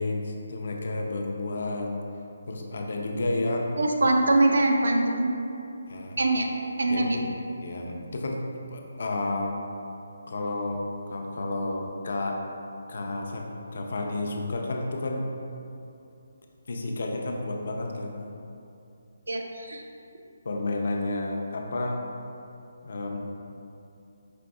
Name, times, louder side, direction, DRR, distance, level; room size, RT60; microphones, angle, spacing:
voice 1, 0.0-1.9 2.5-3.7 5.9-6.2 6.9-8.4 8.7-9.6 10.3-12.4 12.9-15.3 16.7-18.2 20.4-22.0 22.8-23.2, left 2 dB, 45° left, 1 dB, 0.4 m, -31 dB
voice 2, 3.8-5.3 6.2-6.5 6.8-7.2 19.3-19.8, right 2 dB, 85° right, 2 dB, 0.5 m, -23 dB
5.1 x 3.4 x 2.3 m, 2.7 s
hypercardioid pair, 180°, 0 cm